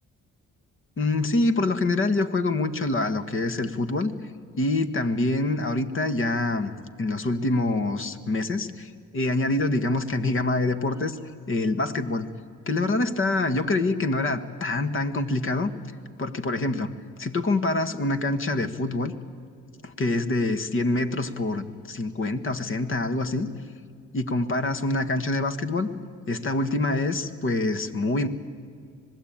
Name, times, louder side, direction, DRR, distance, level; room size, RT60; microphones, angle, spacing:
voice 1, 1.0-4.1 4.6-6.7 7.0-11.2 11.5-12.3 12.7-15.7 16.2-16.9 17.2-19.1 19.8-23.5 24.1-25.9 26.3-28.3, left 2 dB, 45° left, 11 dB, 1.6 m, -25 dB
25.5 x 19.5 x 8.9 m, 2.2 s
cardioid pair, 90°, 30 cm